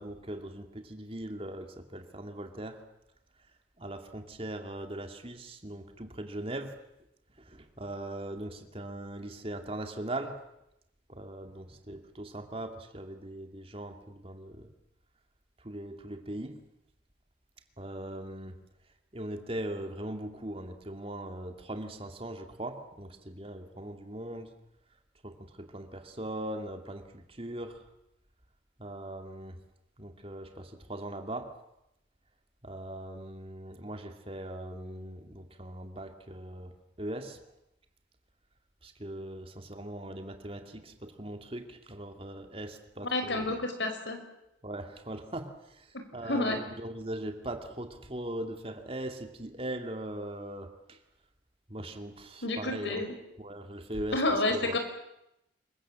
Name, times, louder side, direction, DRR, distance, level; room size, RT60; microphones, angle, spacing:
voice 1, 0.0-2.8 3.8-6.7 7.4-10.4 11.1-14.7 15.6-16.6 17.8-18.5 19.1-24.5 25.2-27.8 28.8-29.6 30.0-31.5 32.6-36.7 37.0-37.4 38.8-43.5 44.6-45.9 46.1-51.0 51.7-53.0 53.4-54.2 54.5-54.8, right 1 dB, 30° right, 6 dB, 2.4 m, -40 dB
voice 2, 43.1-44.2 46.2-46.6 52.4-53.1 54.1-54.8, left 2 dB, 75° left, 6 dB, 5.1 m, -29 dB
27.0 x 23.5 x 7.6 m, 0.86 s
head